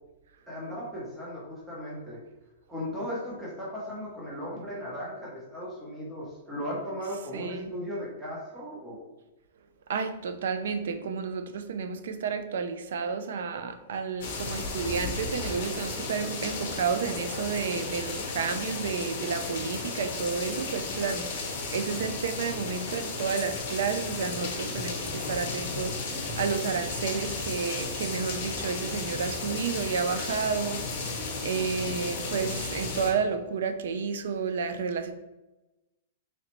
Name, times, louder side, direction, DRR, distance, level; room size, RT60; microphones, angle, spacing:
voice 1, 0.5-2.2 2.7-9.0, equal, 5° right, -7 dB, 0.7 m, -37 dB
voice 2, 7.3-7.7 9.9-35.1, right 5 dB, 65° right, 9 dB, 0.4 m, -31 dB
sound 1, 14.2-33.1, left 3 dB, 40° left, 0.9 m, -34 dB
3.9 x 3.1 x 2.9 m, 1.0 s
supercardioid pair, 175°, 0 cm